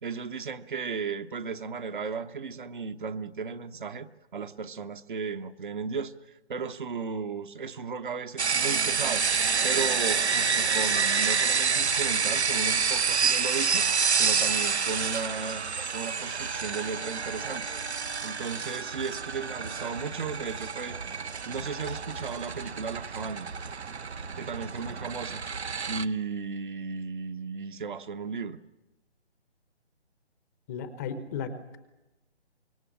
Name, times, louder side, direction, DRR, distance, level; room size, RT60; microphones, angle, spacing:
voice 1, 0.0-4.1 4.3-9.3 9.6-13.9 14.1-15.6 15.9-17.7 18.2-23.5 24.4-25.4 25.9-28.6, right 5 dB, 50° right, 9 dB, 1.1 m, -35 dB
sound 1, 8.4-26.0, right 5 dB, 75° right, 0.9 m, -28 dB
Wind instrument woodwind instrument, 16.4-21.1, right 1 dB, 85° left, 5.5 m, -50 dB
voice 2, 30.7-31.8, left 6 dB, 15° left, 11 dB, 0.9 m, -35 dB
25.5 x 22.5 x 7.3 m, 1.0 s
figure-of-eight pair, 140°, 33 cm